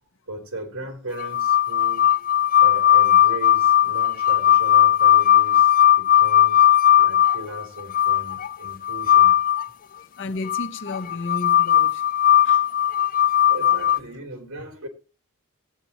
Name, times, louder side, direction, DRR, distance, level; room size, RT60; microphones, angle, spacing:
voice 1, 0.3-2.1 2.6-6.7 7.0-9.4 13.5-14.9, right 1 dB, 80° right, 3.7 m, -37 dB
sound 1, 1.2-9.7 10.5-14.0, left 11 dB, 40° left, 0.5 m, -17 dB
voice 2, 10.2-12.1 12.4-12.6, left 2 dB, 60° left, 1.3 m, -32 dB
20.0 x 8.7 x 3.0 m
head